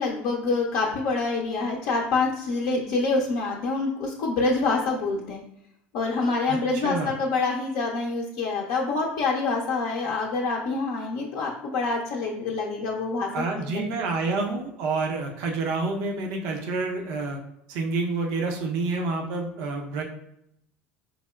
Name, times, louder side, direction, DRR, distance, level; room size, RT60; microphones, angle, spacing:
voice 1, 0.0-5.4 5.9-13.9, left 3 dB, 65° left, -2 dB, 0.5 m, -26 dB
voice 2, 6.5-7.1 13.3-17.4 17.7-20.0, right 3 dB, 65° right, 2 dB, 0.6 m, -28 dB
4.6 x 2.0 x 2.2 m, 0.79 s
hypercardioid pair, 80°, 7 cm